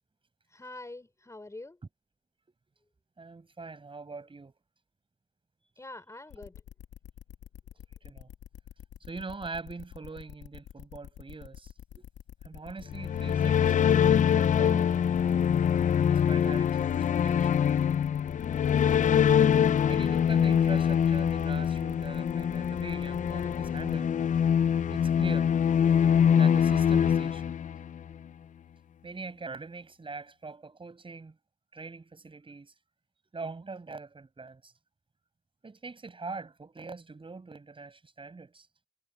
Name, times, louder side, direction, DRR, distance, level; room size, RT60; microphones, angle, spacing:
voice 1, 0.5-1.8 5.8-6.6, left 2 dB, 15° left, 5.1 m, -45 dB
voice 2, 3.2-4.5 8.0-8.3 9.1-12.1 12.4-15.0 16.0-17.6 19.9-24.1 24.8-25.5 26.3-27.5 29.0-31.4 31.7-32.7 33.3-34.7 35.6-38.7, right 4 dB, 25° right, 6.6 m, -42 dB
sound 1, 6.3-24.0, left 10 dB, 70° left, 2.0 m, -47 dB
sound 2, 12.9-28.1, left 8 dB, 40° left, 0.5 m, -24 dB
cardioid pair, 90°, 20 cm